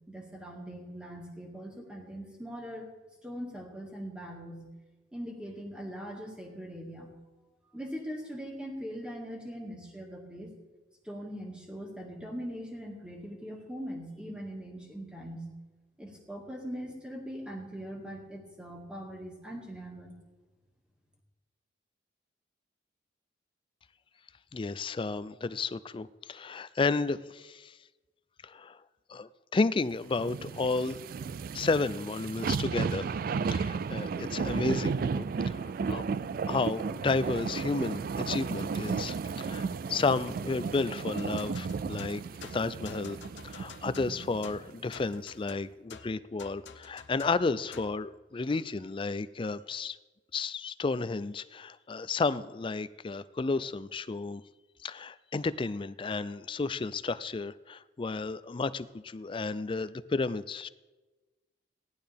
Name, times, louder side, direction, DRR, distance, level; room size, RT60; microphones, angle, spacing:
voice 1, 0.1-2.9 3.2-4.7 5.1-7.1 7.7-10.5 11.0-15.5 16.0-20.1, equal, 5° right, -1 dB, 2.1 m, -41 dB
voice 2, 24.5-27.7 28.4-28.8 29.1-31.0 31.5-33.1 33.5-36.2 36.5-42.2 42.5-43.2 43.4-50.0 50.3-54.4 54.8-60.7, left 3 dB, 30° left, 16 dB, 0.4 m, -32 dB
sound 1, 30.1-44.6 45.0-45.1, right 5 dB, 50° right, 0.3 m, -34 dB
sound 2, 41.2-48.0, left 6 dB, 75° left, 0.8 m, -50 dB
17.0 x 11.5 x 3.5 m, 1.2 s
head